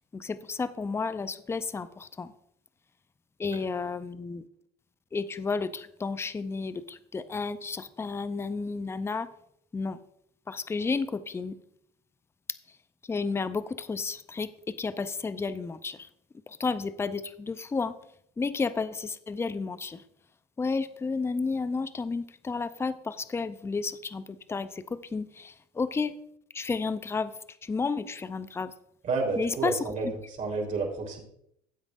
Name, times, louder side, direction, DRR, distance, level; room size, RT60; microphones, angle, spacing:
voice 1, 0.1-2.3 3.4-4.4 5.1-9.3 9.7-10.0 10.5-11.6 13.1-16.1 16.5-18.0 18.4-20.0 20.6-26.2 26.5-27.3 27.6-28.7 29.4-29.8, left 4 dB, 15° left, 14 dB, 0.5 m, -32 dB
voice 2, 29.0-31.2, right 4 dB, 40° right, 0 dB, 3.8 m, -30 dB
15.0 x 8.0 x 2.5 m, 0.73 s
hypercardioid pair, 90°, 20 cm